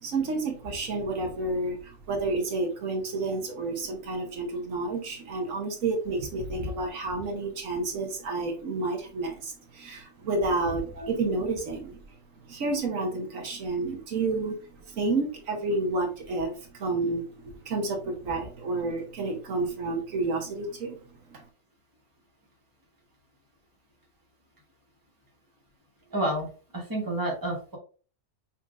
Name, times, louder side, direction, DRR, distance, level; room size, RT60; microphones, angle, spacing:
voice 1, 0.0-12.0 12.4-14.6 14.9-17.2 17.6-21.0 21.3-21.4, right 3 dB, 80° right, 2 dB, 1.4 m, -30 dB
voice 2, 26.1-27.8, right 1 dB, 15° right, -2 dB, 1.3 m, -30 dB
5.9 x 2.9 x 2.4 m, 0.37 s
omnidirectional pair, 1.4 m